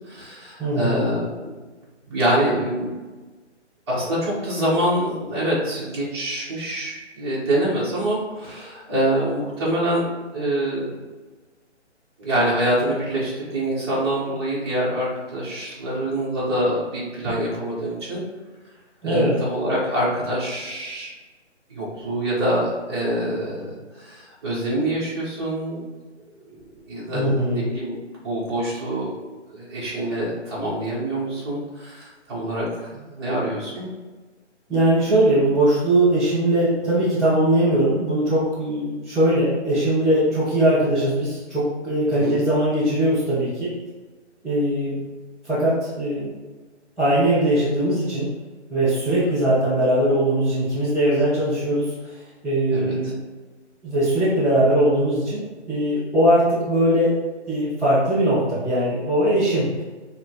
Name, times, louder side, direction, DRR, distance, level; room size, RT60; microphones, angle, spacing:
voice 1, 0.0-1.5 2.1-3.0 3.9-11.0 12.2-18.2 19.0-21.1 21.7-25.8 26.5-26.6 26.9-29.1 29.5-33.9 42.2-42.4 52.7-52.9, right 1 dB, 20° right, -7 dB, 1.0 m, -25 dB
voice 2, 0.6-1.1 19.0-19.4 27.1-27.6 34.7-43.7 44.4-45.0 45.4-46.3 47.0-48.3 48.7-51.9 52.4-53.1 53.8-57.1 57.5-59.8, right 1 dB, ahead, -16 dB, 0.4 m, -20 dB
5.6 x 2.1 x 2.9 m, 1.3 s
hypercardioid pair, 160°, 36 cm